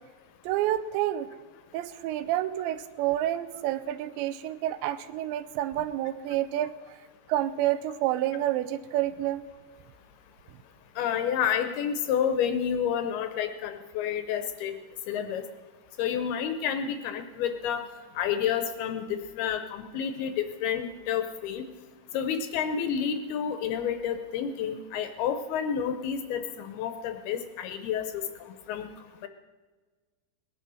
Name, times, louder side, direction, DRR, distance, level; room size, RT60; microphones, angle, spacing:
voice 1, 0.5-1.3 1.7-6.7 7.3-9.5, right 13 dB, 85° right, 13 dB, 3.0 m, -29 dB
voice 2, 11.0-14.7 15.1-15.4 16.0-17.8 18.2-21.6 22.1-28.2 28.7-28.9 29.2-29.3, left 8 dB, 75° left, 8 dB, 2.5 m, -29 dB
19.5 x 10.0 x 6.3 m, 1.4 s
omnidirectional pair, 5.0 m